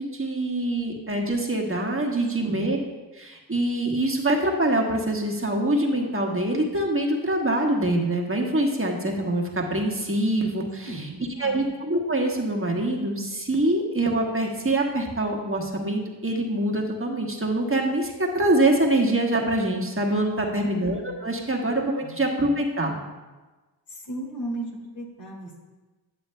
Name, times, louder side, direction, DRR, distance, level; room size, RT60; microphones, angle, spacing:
voice 1, 0.0-2.8 3.1-11.1 11.4-22.9, right 1 dB, 25° right, 0 dB, 1.3 m, -24 dB
voice 2, 2.4-2.7 10.8-11.7 20.4-20.7 22.0-22.1 23.9-25.6, right 1 dB, 70° left, -2 dB, 1.9 m, -36 dB
9.8 x 6.9 x 2.2 m, 1.2 s
supercardioid pair, 40°, 47 cm